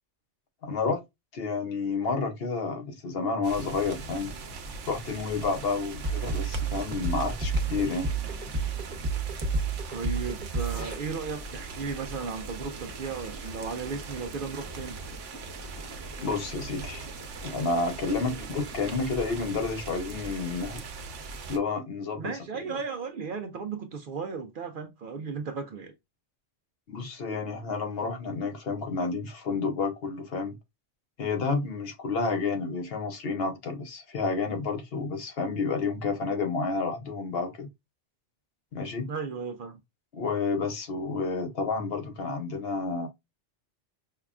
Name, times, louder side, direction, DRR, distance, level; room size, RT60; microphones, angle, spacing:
voice 1, 0.6-1.0 1.3-4.3 4.9-8.1 16.2-17.1 17.4-20.8 21.5-22.3 22.6-22.8 26.9-30.6 31.2-37.7 38.7-39.1 40.1-43.1, left 4 dB, 60° left, 0.9 m, -30 dB
sound 1, 3.4-21.6, right 4 dB, 85° right, 1.0 m, -40 dB
sound 2, 6.0-10.9, right 4 dB, 40° right, 1.1 m, -29 dB
voice 2, 9.9-15.0 18.3-18.5 22.2-25.9 39.1-39.8, right 5 dB, 60° right, 0.6 m, -35 dB
sound 3, 11.3-18.8, right 1 dB, 20° left, 0.6 m, -50 dB
5.5 x 2.2 x 2.4 m
omnidirectional pair, 1.2 m